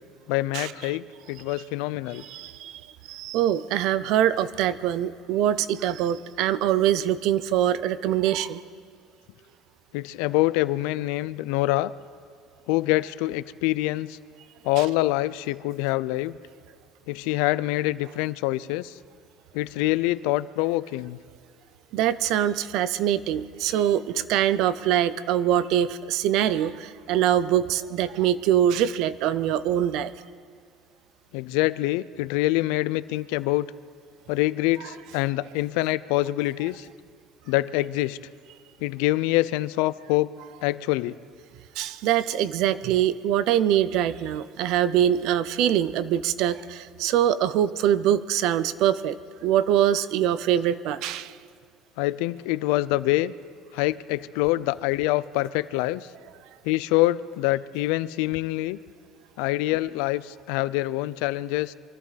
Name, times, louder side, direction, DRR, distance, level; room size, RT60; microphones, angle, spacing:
voice 1, 0.3-2.2 9.9-11.9 12.7-14.2 14.6-16.4 17.1-18.9 19.5-21.2 31.3-33.7 34.3-36.9 37.5-38.2 38.8-40.3 40.6-41.1 52.0-53.3 53.7-56.1 56.6-58.8 59.4-61.7, left 18 dB, 90° left, 17 dB, 0.4 m, -25 dB
voice 2, 2.2-2.8 3.1-8.6 21.9-30.1 41.8-49.2 49.4-51.3, right 11 dB, 55° right, 15 dB, 0.5 m, -23 dB
24.5 x 13.5 x 4.1 m, 2.2 s
cardioid pair, 175°, 0 cm